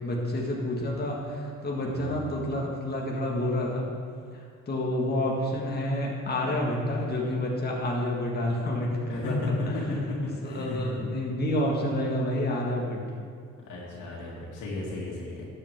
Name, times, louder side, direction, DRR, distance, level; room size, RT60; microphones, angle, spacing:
voice 1, 0.0-3.9 4.3-9.8 10.4-13.0, left 1 dB, 35° left, -2 dB, 1.9 m, -29 dB
voice 2, 1.8-2.4 9.1-9.3 9.7-11.0 13.7-15.5, left 2 dB, 90° left, -4 dB, 2.9 m, -35 dB
12.5 x 8.6 x 3.7 m, 2.2 s
cardioid pair, 90°, 30 cm